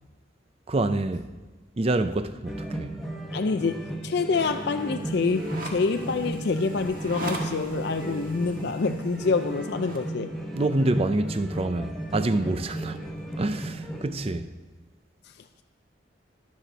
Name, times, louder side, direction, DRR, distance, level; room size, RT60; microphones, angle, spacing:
voice 1, 0.7-1.3 1.8-3.0 10.5-13.0 13.4-14.5, right 2 dB, 30° right, 0.5 m, -26 dB
sound 1, 2.5-14.0, right 1 dB, ahead, 1.3 m, -35 dB
voice 2, 3.3-10.3, left 4 dB, 60° left, 0.5 m, -27 dB
sound 2, 4.2-10.1, right 2 dB, 50° right, 1.7 m, -41 dB
22.0 x 7.6 x 4.0 m
head